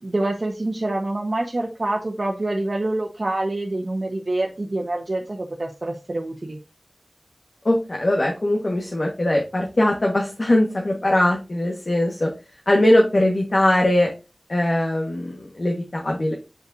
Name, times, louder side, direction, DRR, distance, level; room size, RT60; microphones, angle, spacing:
voice 1, 0.0-6.6, right 2 dB, 60° right, -1 dB, 1.1 m, -26 dB
voice 2, 7.6-12.3 12.7-14.1 14.5-16.3, left 1 dB, 60° left, -1 dB, 1.4 m, -20 dB
7.6 x 5.4 x 2.6 m, 0.29 s
wide cardioid pair, 55°, 0 cm